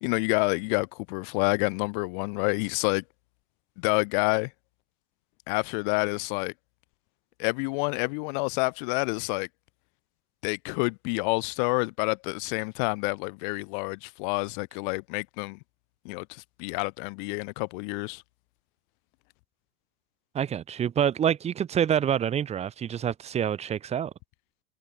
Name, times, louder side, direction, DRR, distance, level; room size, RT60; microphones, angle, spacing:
voice 1, 0.0-3.0 3.8-4.5 5.5-6.5 7.4-9.5 10.4-15.6 16.0-18.2, left 34 dB, 55° left, 0.7 m, -28 dB
voice 2, 20.3-24.1, right 9 dB, 20° right, 0.9 m, -27 dB
supercardioid pair, 125°, 30 cm